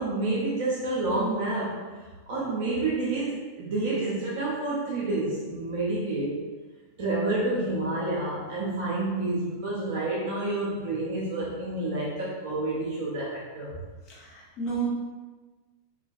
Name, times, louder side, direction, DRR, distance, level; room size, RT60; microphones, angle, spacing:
voice 1, 0.0-6.4 7.0-13.7, right 2 dB, 50° right, -6 dB, 0.5 m, -29 dB
voice 2, 14.1-14.8, right 5 dB, 35° left, -5 dB, 0.7 m, -32 dB
2.2 x 2.2 x 2.5 m, 1.3 s
figure-of-eight pair, 90°, 0 cm